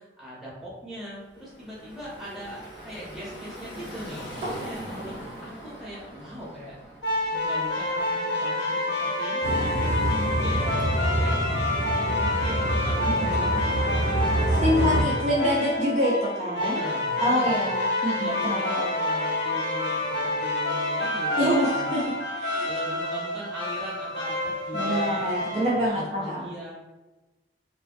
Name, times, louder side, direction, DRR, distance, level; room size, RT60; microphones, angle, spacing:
voice 1, 0.0-5.1 5.4-6.7 7.3-11.4 12.0-15.3 16.6-17.7 18.1-22.1 22.6-26.7, right 1 dB, ahead, -8 dB, 0.7 m, -39 dB
Car passing by / Traffic noise roadway noise, 1.2-8.1, equal, 65° left, 0.9 m, -42 dB
sound 1, 7.0-25.9, left 2 dB, 80° left, 0.5 m, -28 dB
sound 2, 9.4-15.0, right 1 dB, 90° right, 0.5 m, -26 dB
voice 2, 14.6-16.8 17.2-18.6 21.4-22.1 22.4-22.7 24.7-26.5, equal, 35° right, -5 dB, 0.3 m, -26 dB
2.3 x 2.1 x 2.5 m, 1.1 s
head